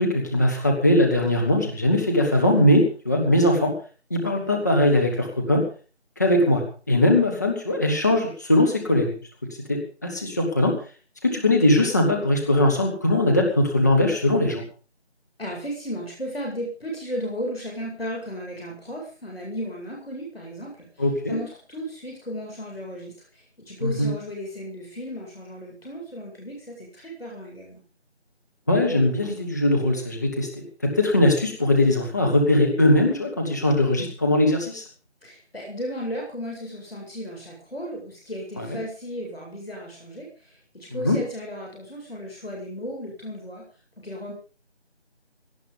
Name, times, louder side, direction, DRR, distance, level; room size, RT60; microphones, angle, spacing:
voice 1, 0.0-3.7 4.1-5.6 6.2-9.2 9.7-10.7 11.2-14.6 21.0-21.4 23.8-24.1 28.7-30.5 30.8-34.8 38.6-38.7 40.9-41.2, left 1 dB, 15° left, 1 dB, 2.0 m, -20 dB
voice 2, 15.4-27.8 35.2-43.6 44.0-44.3, equal, 60° left, -1 dB, 8.0 m, -35 dB
18.0 x 12.0 x 5.3 m, 0.37 s
figure-of-eight pair, 170°, 34 cm